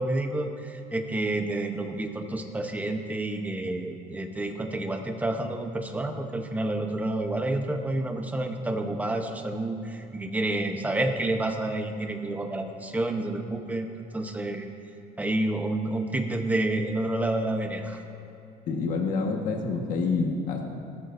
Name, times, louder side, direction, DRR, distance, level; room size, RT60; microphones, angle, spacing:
voice 1, 0.0-14.7 15.2-18.0, right 2 dB, 10° right, 4 dB, 0.9 m, -29 dB
voice 2, 18.7-20.7, left 4 dB, 55° left, 2 dB, 1.5 m, -27 dB
19.5 x 13.0 x 2.7 m, 2.8 s
cardioid pair, 150°, 16 cm